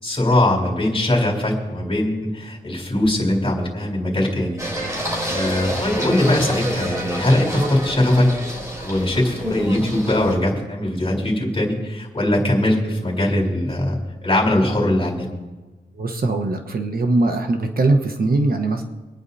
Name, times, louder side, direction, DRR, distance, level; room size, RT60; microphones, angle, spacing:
voice 1, 0.0-4.6 4.9-8.3 8.8-15.2, left 1 dB, 30° left, -3 dB, 3.8 m, -21 dB
Singing, 4.6-10.3, equal, 20° right, 3.5 m, -27 dB
voice 2, 16.0-18.8, right 2 dB, 60° right, 5 dB, 1.1 m, -21 dB
26.0 x 9.7 x 2.8 m, 1.2 s
wide cardioid pair, 125°, 18 cm